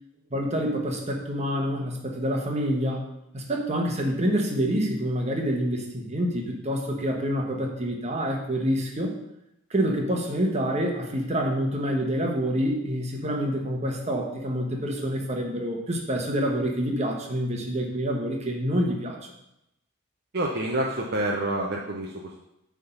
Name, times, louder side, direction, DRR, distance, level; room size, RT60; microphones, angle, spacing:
voice 1, 0.3-3.0 3.3-9.1 9.7-19.2, equal, 30° right, 1 dB, 1.1 m, -27 dB
voice 2, 20.3-22.4, right 1 dB, 45° right, -1 dB, 0.6 m, -28 dB
8.0 x 3.6 x 5.6 m, 0.84 s
head